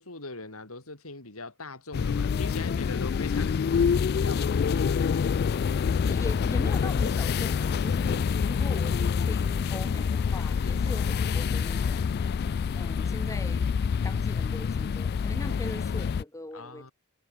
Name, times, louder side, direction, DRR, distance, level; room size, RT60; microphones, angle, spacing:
voice 1, 0.0-3.5 4.1-5.4 10.6-10.9 16.5-16.9, left 3 dB, 75° left, 5.2 m, -41 dB
sound 1, 1.9-16.2, left 6 dB, 45° left, 0.3 m, -26 dB
voice 2, 6.1-12.1 12.8-13.7 14.0-16.9, left 1 dB, 15° left, 2.3 m, -41 dB
head